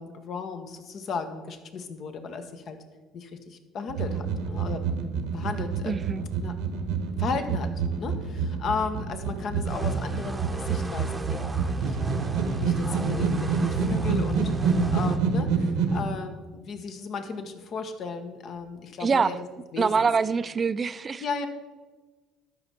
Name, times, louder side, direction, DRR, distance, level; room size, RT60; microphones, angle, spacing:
voice 1, 0.0-2.8 3.1-6.0 6.4-6.5 7.2-7.7 8.0-19.5 19.7-20.1 21.2-21.5, left 5 dB, 55° left, 8 dB, 1.1 m, -35 dB
sound 1, 3.9-16.1, right 5 dB, 80° right, 1.0 m, -27 dB
voice 2, 5.8-6.2 19.0-19.3 19.8-21.2, right 5 dB, 35° right, 15 dB, 0.4 m, -24 dB
sound 2, 9.7-15.2, right 2 dB, 15° right, 0.8 m, -35 dB
12.0 x 5.6 x 4.3 m, 1.3 s
supercardioid pair, 75°, 0 cm